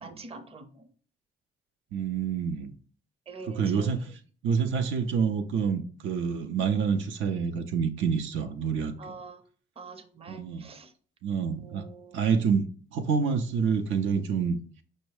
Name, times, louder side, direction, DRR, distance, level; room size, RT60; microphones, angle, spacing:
voice 1, 0.0-0.9 3.3-4.1 9.0-9.4 9.8-10.9 11.6-12.2, right 4 dB, 30° right, 0.6 m, -45 dB
voice 2, 1.9-2.7 3.5-4.1 4.4-8.9 10.3-10.7 11.2-11.9 12.1-12.7 12.9-14.6, right 6 dB, 80° right, 0.6 m, -27 dB
5.4 x 2.1 x 4.7 m
cardioid pair, 90°, 20 cm